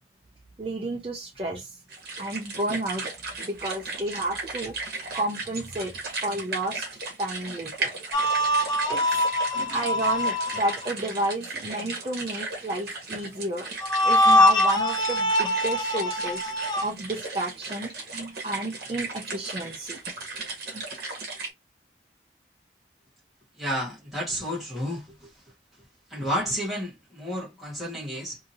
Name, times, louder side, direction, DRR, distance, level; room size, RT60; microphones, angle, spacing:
voice 1, 0.6-1.7 2.2-3.0 3.4-4.8 5.1-5.9 6.2-6.9 7.2-7.9 8.9-9.2 9.5-13.7 14.0-16.5 16.8-20.0 20.7-20.8, right 2 dB, 30° right, 0.6 m, -31 dB
sound 1, 1.9-21.5, right 3 dB, 55° right, 1.1 m, -36 dB
sound 2, 8.1-10.9 13.8-16.9, left 1 dB, 25° left, 0.5 m, -23 dB
voice 2, 23.6-25.3 26.1-28.4, equal, ahead, 1.1 m, -31 dB
2.8 x 2.7 x 2.6 m
head